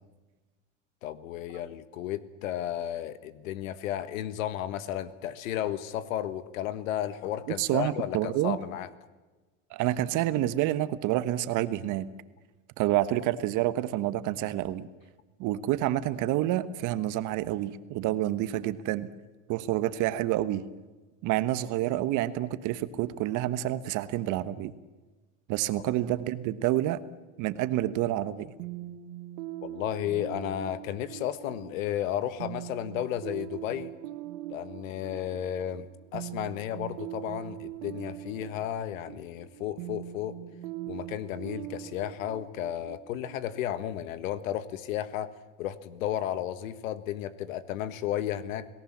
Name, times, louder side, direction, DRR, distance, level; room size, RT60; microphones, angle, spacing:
voice 1, 1.0-8.9 29.6-33.9 34.5-35.9 36.1-40.4 40.9-45.3 45.6-48.7, left 11 dB, 85° left, 14 dB, 1.5 m, -33 dB
voice 2, 7.6-8.6 9.7-12.1 12.8-14.9 15.4-19.1 19.5-20.6 21.2-24.7 25.5-27.0 27.4-28.5, right 14 dB, 50° right, 13 dB, 1.3 m, -28 dB
sound 1, 28.6-44.2, right 14 dB, 65° right, 1.4 m, -42 dB
28.5 x 18.0 x 7.4 m, 1.2 s
supercardioid pair, 125°, 39 cm